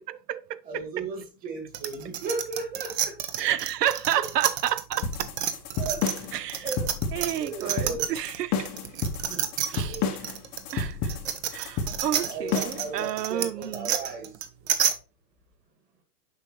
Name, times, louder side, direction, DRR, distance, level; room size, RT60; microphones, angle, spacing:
voice 1, 0.0-1.1 3.4-5.3 6.3-6.7 7.1-8.7 9.7-10.3 10.7-11.2 11.5-13.9, right 11 dB, 70° right, 0.7 m, -30 dB
voice 2, 0.7-3.1 4.2-4.3 5.8-6.0 6.6-6.9 7.4-8.1 9.3-9.5 9.8-10.1 12.1-14.3, right 4 dB, 15° right, 1.8 m, -35 dB
sound 1, 1.7-8.4 8.7-14.9, right 10 dB, 40° right, 0.9 m, -29 dB
sound 2, 5.0-12.9, left 5 dB, 20° left, 0.7 m, -30 dB
8.0 x 5.6 x 3.0 m
hypercardioid pair, 145°, 50 cm